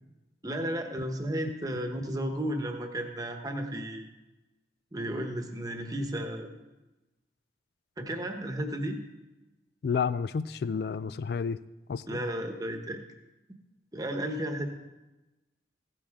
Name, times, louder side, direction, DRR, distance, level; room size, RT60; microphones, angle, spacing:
voice 1, 0.4-4.1 4.9-6.6 8.0-9.0 12.1-13.0 13.9-14.7, right 1 dB, 20° right, 5 dB, 1.1 m, -33 dB
voice 2, 9.8-11.6 11.9-12.2, left 6 dB, 60° left, 15 dB, 0.3 m, -30 dB
15.5 x 9.6 x 3.6 m, 1.1 s
head